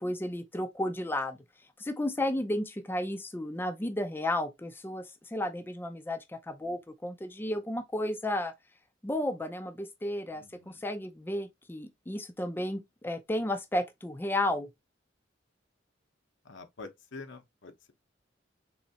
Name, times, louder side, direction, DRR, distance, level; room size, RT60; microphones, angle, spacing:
voice 1, 0.0-1.4 1.8-8.5 9.0-14.7, left 1 dB, 10° left, 0.4 m, -33 dB
voice 2, 10.3-10.8 16.4-17.9, left 3 dB, 80° left, 0.9 m, -47 dB
4.1 x 3.1 x 2.8 m
head